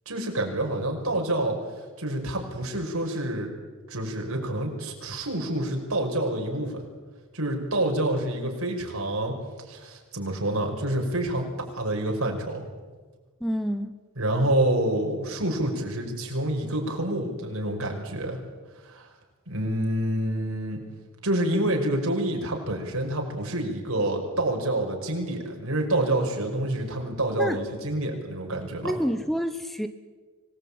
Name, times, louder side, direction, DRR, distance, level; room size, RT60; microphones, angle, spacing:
voice 1, 0.1-1.6 2.0-3.5 3.9-6.8 7.3-9.3 9.7-11.5 11.7-12.6 14.2-18.4 18.8-19.1 19.5-20.8 21.2-28.9, right 1 dB, 75° right, 2 dB, 5.6 m, -27 dB
voice 2, 13.4-13.9 27.4-27.6 28.8-29.9, equal, ahead, 9 dB, 1.0 m, -28 dB
25.5 x 19.0 x 8.8 m, 1.4 s
head